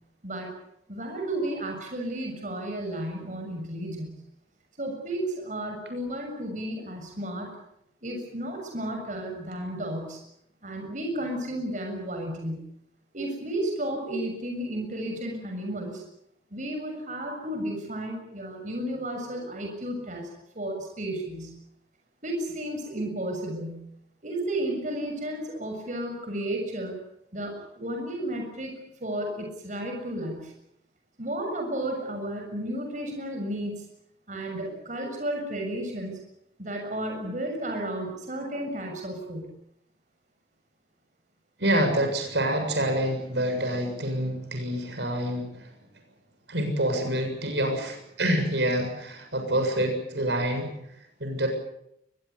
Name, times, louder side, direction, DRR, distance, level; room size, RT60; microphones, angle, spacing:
voice 1, 0.9-4.2 4.8-7.5 8.0-10.2 10.6-12.6 13.1-16.0 16.5-20.3 20.5-21.5 22.2-23.8 24.2-27.0 27.3-28.7 29.0-30.5 31.2-33.8 34.3-36.2 36.6-39.5, right 1 dB, 45° right, 2 dB, 6.8 m, -33 dB
voice 2, 41.6-45.7 46.5-50.7 51.2-51.5, right 1 dB, 80° right, 4 dB, 7.2 m, -27 dB
24.0 x 21.5 x 8.4 m, 0.78 s
head